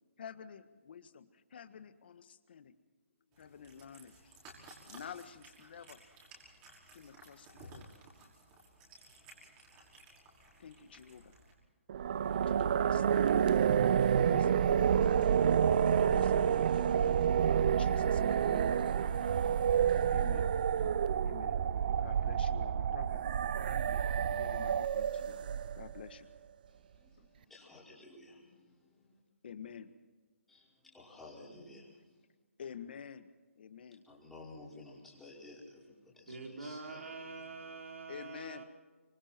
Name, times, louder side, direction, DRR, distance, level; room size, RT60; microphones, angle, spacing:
voice 1, 0.2-2.7 3.3-4.3 4.8-6.0 6.9-7.9 10.6-11.3 12.3-13.4 14.2-15.3 16.0-17.0 17.5-19.2 20.1-20.5 21.2-23.2 24.3-25.4 25.7-26.3 27.2-27.7 28.5-28.7 29.4-29.9 32.6-33.3 33.6-34.0 38.1-38.6, left 7 dB, 50° left, 11 dB, 1.6 m, -50 dB
Cat, 3.3-11.5, right 2 dB, 20° right, 5.7 m, -56 dB
sound 1, 11.9-26.0, right 8 dB, 40° right, 0.5 m, -29 dB
voice 2, 26.7-29.2 30.5-32.2 34.1-37.3, left 2 dB, 5° left, -6 dB, 5.3 m, -54 dB
voice 3, 36.3-38.6, right 4 dB, 75° right, 2 dB, 4.4 m, -45 dB
25.5 x 24.0 x 4.6 m, 1.3 s
hypercardioid pair, 160°, 7 cm